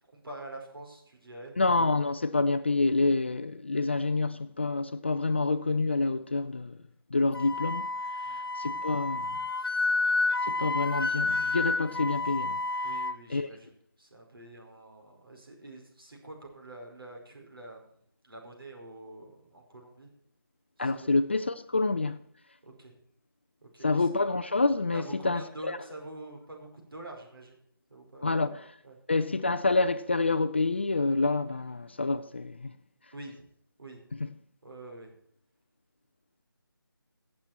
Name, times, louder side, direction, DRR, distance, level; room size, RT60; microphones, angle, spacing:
voice 1, 0.1-1.5 8.2-8.4 12.8-13.7 14.0-17.8 18.2-20.1 20.8-21.1 22.6-23.0 23.6-24.0 24.9-27.5 27.9-28.6 28.8-29.0 33.1-33.4 33.8-34.0 34.6-35.1, right 2 dB, 75° right, 4.8 m, -46 dB
voice 2, 1.6-6.8 7.1-7.9 8.3-9.4 10.4-12.6 13.3-13.5 20.8-22.2 23.8-25.8 28.2-28.7 29.1-32.7 34.2-34.3, left 3 dB, 30° left, 0.4 m, -27 dB
Wind instrument woodwind instrument, 7.3-13.2, left 3 dB, 75° left, 1.1 m, -30 dB
16.0 x 7.4 x 4.4 m
figure-of-eight pair, 165°, 12 cm